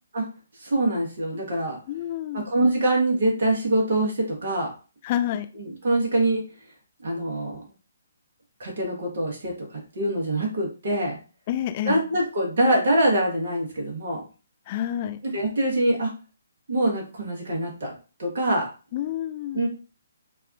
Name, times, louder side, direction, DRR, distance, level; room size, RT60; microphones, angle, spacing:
voice 1, 0.6-1.8 2.3-4.7 5.6-6.4 7.0-7.6 8.6-9.5 10.0-11.2 11.8-14.2 15.2-16.1 16.7-17.9 18.2-18.7 19.5-19.7, right 1 dB, 50° right, -1 dB, 1.0 m, -24 dB
voice 2, 1.9-2.5 5.0-5.5 11.5-12.0 14.7-15.2 18.9-19.7, left 11 dB, 30° left, 7 dB, 0.3 m, -28 dB
3.4 x 2.3 x 2.3 m, 0.34 s
figure-of-eight pair, 135°, 0 cm